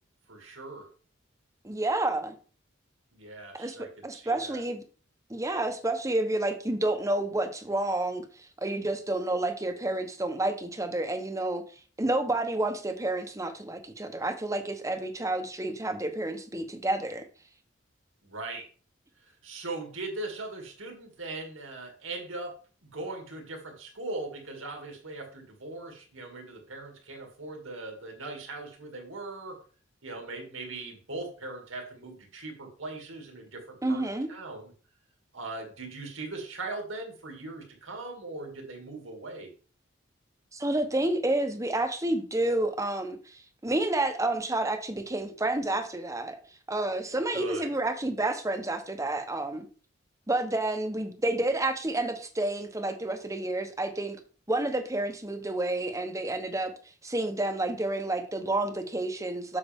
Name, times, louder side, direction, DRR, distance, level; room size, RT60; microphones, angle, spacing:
voice 1, 0.3-0.9 3.1-4.6 18.2-18.7 19.4-22.5 22.8-29.6 30.0-34.7 35.3-39.5 47.3-47.7, right 2 dB, 85° right, 2.6 m, -40 dB
voice 2, 1.6-2.3 3.5-4.8 5.3-8.3 8.6-11.6 12.0-17.3 33.8-34.3 40.5-46.4 46.7-49.6 50.3-54.2 54.5-56.7 57.0-59.6, right 2 dB, 15° right, 0.9 m, -29 dB
8.2 x 6.5 x 3.6 m
head